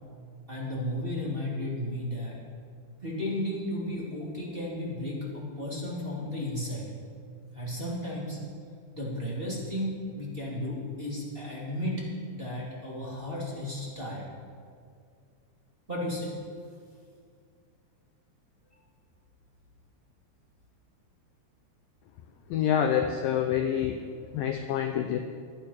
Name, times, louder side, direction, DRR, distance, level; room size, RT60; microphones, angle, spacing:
voice 1, 0.5-2.4 3.0-6.9 7.5-8.4 8.9-14.2 15.9-16.3, left 1 dB, 15° right, -5 dB, 2.2 m, -34 dB
voice 2, 22.5-24.0 24.3-25.2, left 9 dB, 85° left, 5 dB, 2.0 m, -27 dB
23.0 x 8.6 x 5.9 m, 2.2 s
omnidirectional pair, 5.0 m